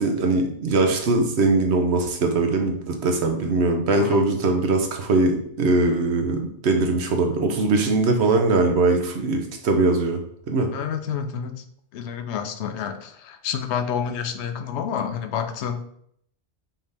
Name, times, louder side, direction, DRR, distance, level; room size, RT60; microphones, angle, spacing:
voice 1, 0.0-10.2 10.5-10.7, right 3 dB, 80° right, 4 dB, 1.1 m, -21 dB
voice 2, 10.7-11.6 11.9-15.8, left 7 dB, 85° left, 7 dB, 0.9 m, -29 dB
5.6 x 2.7 x 3.4 m, 0.67 s
omnidirectional pair, 1.1 m